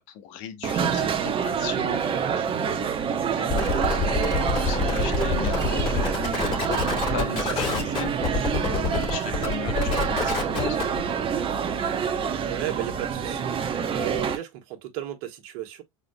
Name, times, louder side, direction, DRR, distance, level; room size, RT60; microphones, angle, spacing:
voice 1, 0.0-6.5 6.8-10.9, left 8 dB, 60° left, 1.2 m, -38 dB
sound 1, 0.6-14.4, right 7 dB, 30° right, 1.0 m, -27 dB
sound 2, 3.5-11.0, left 4 dB, 30° left, 2.8 m, -27 dB
voice 2, 12.4-13.5 13.9-15.8, right 11 dB, 60° right, 1.6 m, -33 dB
5.1 x 4.3 x 2.2 m
hypercardioid pair, 95°, 17 cm